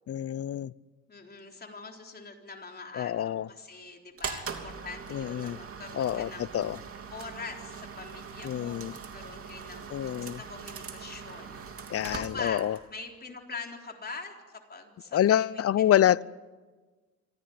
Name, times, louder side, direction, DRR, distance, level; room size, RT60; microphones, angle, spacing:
voice 1, 0.1-0.7 2.9-3.5 5.1-5.6 5.9-6.8 8.4-8.9 9.9-10.4 11.9-12.8 15.1-16.2, left 11 dB, 50° left, 0.6 m, -27 dB
voice 2, 1.1-6.6 7.1-11.6 12.1-14.3 14.7-16.0, left 4 dB, 30° left, 3.9 m, -43 dB
sound 1, 4.2-12.9, right 6 dB, 50° right, 3.1 m, -41 dB
24.5 x 16.0 x 9.5 m
cardioid pair, 90°, 30 cm